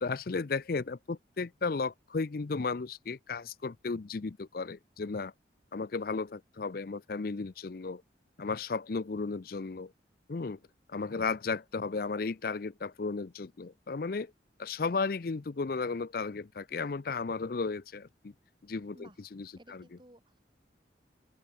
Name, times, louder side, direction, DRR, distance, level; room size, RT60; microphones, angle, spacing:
voice 1, 0.0-5.3 5.7-8.0 8.4-9.9 10.3-10.6 10.9-14.3 14.6-18.3 18.6-19.8, left 4 dB, 50° left, 0.5 m, -34 dB
voice 2, 19.6-20.4, right 1 dB, 25° right, 3.0 m, -56 dB
open air
head